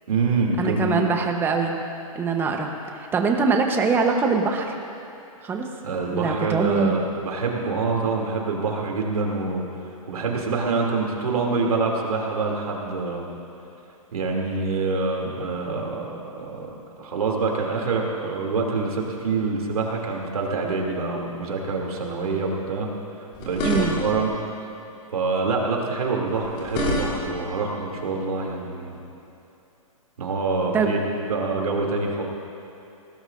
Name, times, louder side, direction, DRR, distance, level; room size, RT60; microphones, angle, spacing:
voice 1, 0.1-0.9 5.8-9.7 10.1-13.3 14.1-16.7 17.0-22.9 23.4-24.3 25.1-29.0 30.2-32.2, right 4 dB, 90° right, -1 dB, 2.9 m, -26 dB
voice 2, 0.6-1.7 2.1-2.7 2.9-4.8 5.4-5.7 6.1-7.0 23.6-24.0 30.7-30.9, right 4 dB, 10° right, 3 dB, 1.0 m, -23 dB
sound 1, 23.3-24.3 26.3-27.4, left 1 dB, 30° left, 3.2 m, -27 dB
22.5 x 18.0 x 2.6 m, 2.8 s
hypercardioid pair, 155°, 18 cm